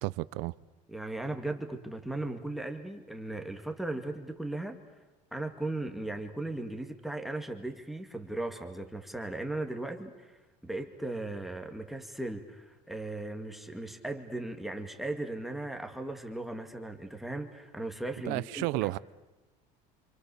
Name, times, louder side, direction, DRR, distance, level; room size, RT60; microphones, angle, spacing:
voice 1, 0.0-0.5 18.3-19.0, right 21 dB, 75° right, 0.8 m, -32 dB
voice 2, 0.9-4.8 5.3-10.4 10.6-19.0, right 2 dB, ahead, 2.1 m, -37 dB
29.0 x 27.5 x 7.1 m
cardioid pair, 155°, 15 cm